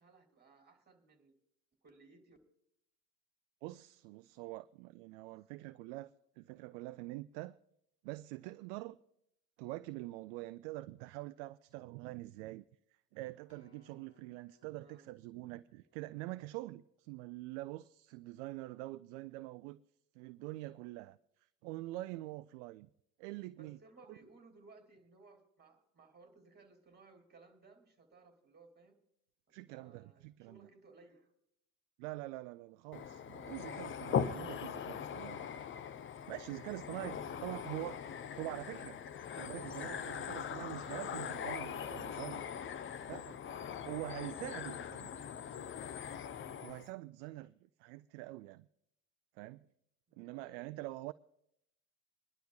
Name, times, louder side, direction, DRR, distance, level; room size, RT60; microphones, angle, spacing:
voice 1, 0.0-1.3 1.8-2.4 5.3-5.4 14.7-15.1 23.6-29.0 29.7-31.3 37.2-37.4 44.3-44.6 50.1-50.6, right 3 dB, 20° right, 2.8 m, -61 dB
voice 2, 3.6-7.5 8.0-9.0 9.6-12.6 13.1-19.8 20.1-21.2 21.6-22.9 23.2-23.8 24.1-24.2 29.5-30.6 32.0-35.5 36.3-38.0 38.4-39.0 39.3-42.5 43.1-43.4 43.8-45.3 46.6-47.5 47.8-48.7 49.4-49.7 50.2-51.1, right 19 dB, 50° right, 0.5 m, -45 dB
Acoustic guitar, 13.5-17.9 18.6-18.7, left 2 dB, 50° left, 5.5 m, -71 dB
sound 1, 32.9-46.9, left 8 dB, 25° left, 0.7 m, -41 dB
25.0 x 11.5 x 2.4 m
hypercardioid pair, 75°, 48 cm